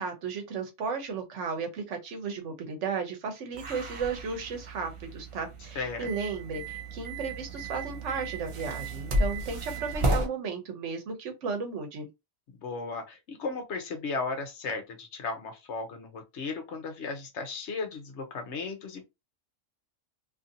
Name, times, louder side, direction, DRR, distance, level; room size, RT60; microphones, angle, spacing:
voice 1, 0.0-12.1, right 5 dB, 70° right, 1.1 m, -34 dB
sound 1, 3.5-10.3, right 1 dB, 50° right, 0.3 m, -33 dB
voice 2, 5.8-6.1 12.6-19.1, left 4 dB, 70° left, 1.0 m, -35 dB
2.8 x 2.5 x 2.6 m
omnidirectional pair, 1.3 m